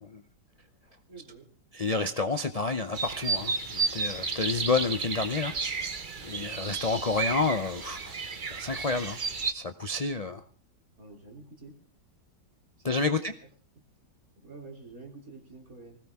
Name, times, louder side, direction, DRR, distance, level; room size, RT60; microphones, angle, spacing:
voice 1, 1.1-1.5 11.0-11.7 12.8-13.3 14.4-16.0, right 3 dB, 50° right, 2 dB, 3.5 m, -47 dB
voice 2, 1.7-5.8 6.2-8.1 8.5-9.2 9.5-10.4 12.8-13.3, left 3 dB, 55° left, 9 dB, 0.4 m, -29 dB
sound 1, 2.9-9.5, right 4 dB, 35° right, 1.0 m, -32 dB
20.0 x 17.0 x 3.6 m, 0.43 s
omnidirectional pair, 1.9 m